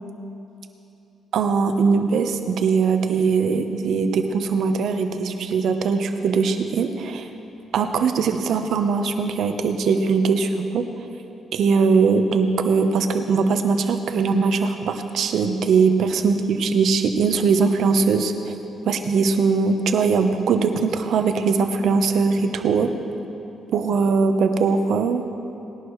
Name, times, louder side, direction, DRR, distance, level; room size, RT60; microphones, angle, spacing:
voice 1, 1.3-7.3 7.7-10.8 11.5-18.5 18.8-22.9 23.7-25.2, right 5 dB, 70° right, 7 dB, 1.0 m, -21 dB
19.5 x 11.0 x 3.2 m, 2.8 s
cardioid pair, 90°, 0 cm